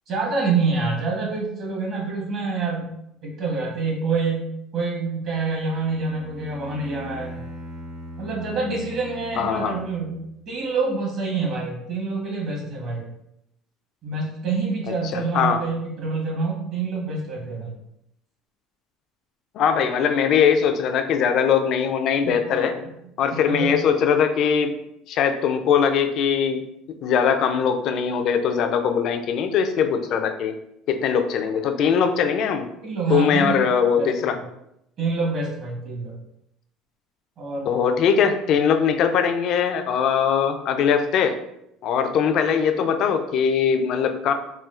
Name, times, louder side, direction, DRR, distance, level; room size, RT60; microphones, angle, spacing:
voice 1, 0.1-2.9 3.2-7.4 8.2-13.1 14.0-17.7 22.2-22.8 23.3-23.8 32.8-33.7 33.9-34.4 35.0-36.2 37.4-37.6, right 4 dB, 45° right, -2 dB, 1.0 m, -27 dB
Bowed string instrument, 5.6-10.4, equal, 25° right, 0.6 m, -40 dB
voice 2, 9.4-9.8 15.1-15.6 19.5-22.7 23.2-24.7 25.1-26.6 27.0-30.5 30.9-32.7 33.1-34.4 37.7-41.4 41.8-44.3, left 7 dB, 50° left, 7 dB, 0.3 m, -21 dB
4.3 x 2.3 x 2.4 m, 0.80 s
cardioid pair, 145°, 0 cm